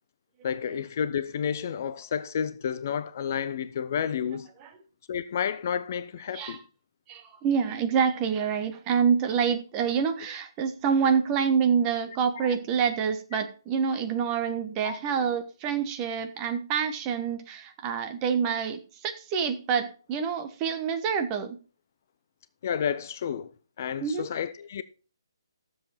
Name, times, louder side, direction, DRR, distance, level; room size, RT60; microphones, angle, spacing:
voice 1, 0.4-4.5 5.1-6.6 12.4-12.5 14.8-15.0 22.6-23.5 23.8-24.8, left 8 dB, 35° left, 0.6 m, -31 dB
voice 2, 7.1-21.6 24.0-24.3, right 7 dB, 20° right, 1.2 m, -27 dB
13.5 x 7.6 x 4.3 m
figure-of-eight pair, 140°, 2 cm